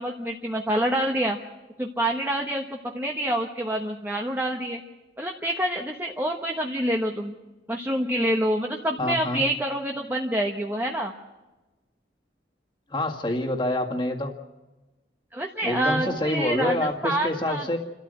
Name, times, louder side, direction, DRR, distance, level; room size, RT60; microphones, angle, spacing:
voice 1, 0.0-1.4 1.8-4.8 5.2-7.3 7.7-11.1 15.3-17.7, right 1 dB, 10° right, 1 dB, 1.1 m, -27 dB
voice 2, 9.0-9.4 12.9-14.3 15.6-17.8, left 1 dB, 25° left, 1 dB, 2.0 m, -27 dB
29.0 x 13.0 x 7.8 m, 1.1 s
head